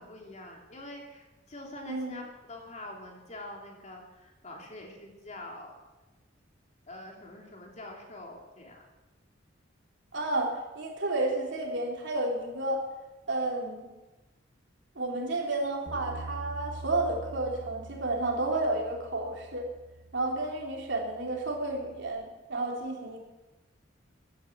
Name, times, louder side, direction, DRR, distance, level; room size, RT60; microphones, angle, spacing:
voice 1, 0.0-5.7 6.9-8.8, left 1 dB, 40° left, 1 dB, 3.2 m, -45 dB
voice 2, 1.9-2.2 10.1-12.8 13.3-13.9 15.0-19.6 20.1-23.2, right 2 dB, 70° right, 0 dB, 3.6 m, -31 dB
Bass guitar, 15.9-22.1, right 3 dB, 50° right, 2.7 m, -45 dB
15.5 x 11.0 x 7.6 m, 1.1 s
head